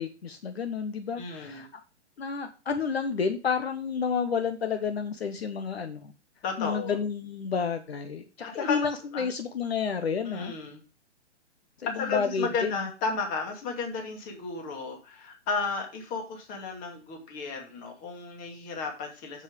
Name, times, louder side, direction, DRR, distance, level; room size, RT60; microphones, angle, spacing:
voice 1, 0.0-1.8 2.2-6.1 6.6-10.5 11.8-12.8, left 6 dB, 60° left, 8 dB, 1.2 m, -30 dB
voice 2, 1.2-1.7 6.4-7.0 8.4-9.3 10.3-10.8 11.8-19.4, left 4 dB, 25° left, 3 dB, 2.4 m, -33 dB
7.6 x 7.6 x 5.1 m, 0.33 s
figure-of-eight pair, 125°, 35 cm